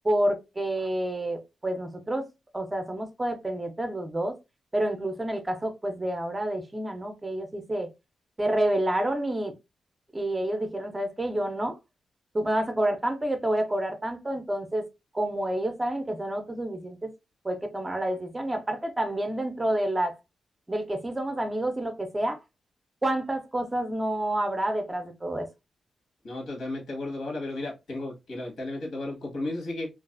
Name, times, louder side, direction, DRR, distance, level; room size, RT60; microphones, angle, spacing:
voice 1, 0.0-2.3 2.5-4.4 4.7-7.9 8.4-9.5 10.1-11.8 12.3-14.9 15.1-17.1 17.4-20.1 20.7-22.4 23.0-25.5, right 1 dB, 15° right, 0.4 m, -28 dB
voice 2, 26.2-29.9, left 2 dB, 85° left, 1.1 m, -34 dB
2.4 x 2.3 x 2.3 m
wide cardioid pair, 120°, 0 cm